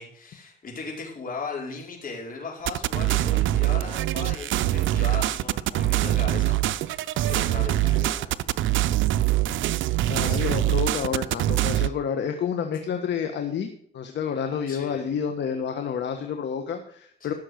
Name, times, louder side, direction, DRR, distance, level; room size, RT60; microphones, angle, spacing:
voice 1, 0.0-8.5 8.8-9.0 10.2-10.5 14.7-15.2 17.2-17.3, left 4 dB, 45° left, -1 dB, 5.1 m, -38 dB
sound 1, 2.7-11.9, right 14 dB, 75° right, 0.5 m, -24 dB
voice 2, 10.1-13.7 13.9-17.3, left 7 dB, 65° left, 6 dB, 1.3 m, -29 dB
14.5 x 6.5 x 6.4 m, 0.62 s
cardioid pair, 90°, 20 cm